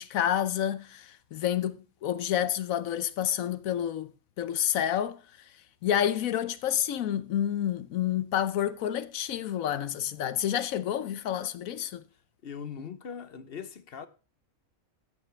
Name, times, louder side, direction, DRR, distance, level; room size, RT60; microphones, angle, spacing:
voice 1, 0.0-4.1 4.4-5.2 5.8-12.0, left 10 dB, 75° left, 1.1 m, -29 dB
voice 2, 12.4-14.1, left 7 dB, 50° left, 0.9 m, -40 dB
14.0 x 8.6 x 3.2 m
omnidirectional pair, 1.5 m